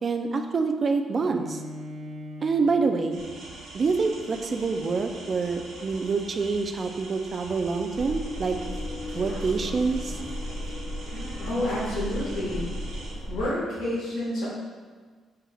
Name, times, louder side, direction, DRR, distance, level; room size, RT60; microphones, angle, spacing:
voice 1, 0.0-1.6 2.4-3.2 3.7-8.6 9.1-10.2, right 4 dB, 40° right, 6 dB, 0.3 m, -26 dB
Bowed string instrument, 1.1-6.8, equal, 60° right, 0.7 m, -44 dB
sound 1, 3.1-13.1, right 2 dB, 85° right, 1.0 m, -44 dB
sound 2, 7.9-13.4, equal, 50° left, 0.9 m, -34 dB
voice 2, 11.5-12.7 13.3-14.5, left 1 dB, 90° left, -8 dB, 1.5 m, -29 dB
4.7 x 3.4 x 2.2 m, 1.5 s
cardioid pair, 90°, 0 cm